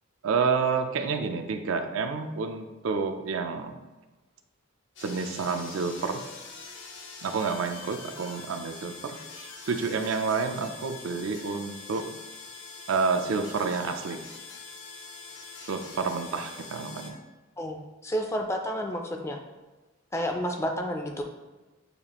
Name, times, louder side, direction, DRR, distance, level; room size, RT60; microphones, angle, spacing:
voice 1, 0.2-3.7 5.0-6.2 7.2-12.1 12.9-14.2 15.6-17.2, right 5 dB, 75° right, 7 dB, 0.4 m, -29 dB
sound 1, 5.0-17.1, left 4 dB, 60° left, 0.6 m, -44 dB
voice 2, 17.6-19.4 20.1-21.2, equal, 15° left, 3 dB, 0.3 m, -30 dB
6.6 x 2.4 x 2.9 m, 1.2 s
head